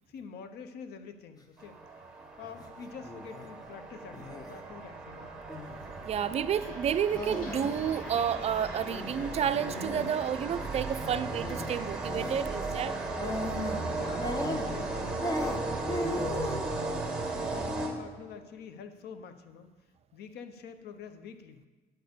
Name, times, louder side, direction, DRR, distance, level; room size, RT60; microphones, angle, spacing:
voice 1, 0.1-1.8 2.4-5.3 13.9-16.6 17.2-19.7 20.1-21.6, left 6 dB, 75° left, 10 dB, 0.7 m, -46 dB
sound 1, 1.6-18.4, right 2 dB, 5° right, 2.0 m, -36 dB
sound 2, 2.4-2.7 3.0-3.5 4.1-4.6 5.5-5.9 7.1-7.8 8.1-8.2 8.9-10.1 11.4-11.7 12.1-12.3 13.2-13.8 14.2-14.9 15.2-16.7 17.3-17.7, left 1 dB, 20° left, 0.9 m, -37 dB
voice 2, 6.1-12.9, right 8 dB, 40° right, 13 dB, 0.4 m, -30 dB
sound 3, 6.6-10.0 10.3-10.8 11.2-11.7 11.9-13.2 13.5-13.8 14.1-14.6, left 1 dB, 50° left, 1.9 m, -51 dB
9.0 x 4.2 x 6.8 m, 1.3 s
cardioid pair, 110°, 17 cm